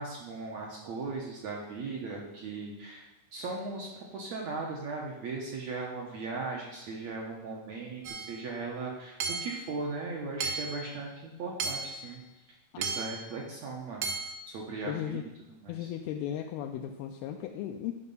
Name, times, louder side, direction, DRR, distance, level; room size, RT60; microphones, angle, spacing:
voice 1, 0.0-3.0 3.3-12.2 12.8-14.1 14.5-15.2 15.6-15.9, right 3 dB, 65° right, -1 dB, 1.8 m, -38 dB
Hammer / Chink clink, 8.1-8.4 9.2-9.6 10.4-10.8 11.6-12.0 12.8-13.2 14.0-14.4, right 4 dB, 85° right, 1.6 m, -34 dB
voice 2, 14.8-15.2 15.7-17.9, left 10 dB, 80° left, 3 dB, 2.4 m, -36 dB
11.5 x 5.4 x 5.5 m, 1.0 s
omnidirectional pair, 4.6 m